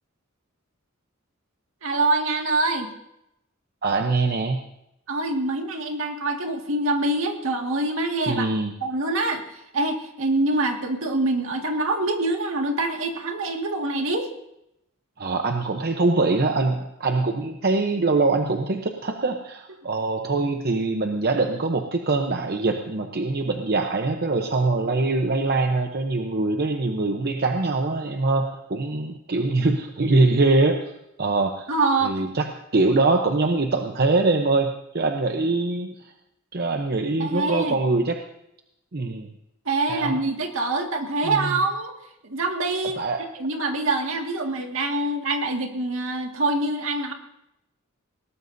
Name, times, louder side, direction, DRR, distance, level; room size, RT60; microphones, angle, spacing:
voice 1, 1.8-2.9 5.1-8.5 8.8-14.3 31.7-32.2 37.2-37.8 39.7-42.0 42.2-43.0 43.4-47.1, right 2 dB, 70° right, 3 dB, 2.0 m, -25 dB
voice 2, 3.8-4.6 8.3-8.7 15.2-30.8 31.2-31.7 32.0-36.1 36.5-38.2 38.9-39.3 39.9-40.2 41.2-41.6 43.0-43.2, right 3 dB, 50° right, 4 dB, 0.9 m, -23 dB
21.0 x 18.0 x 2.7 m, 0.83 s
head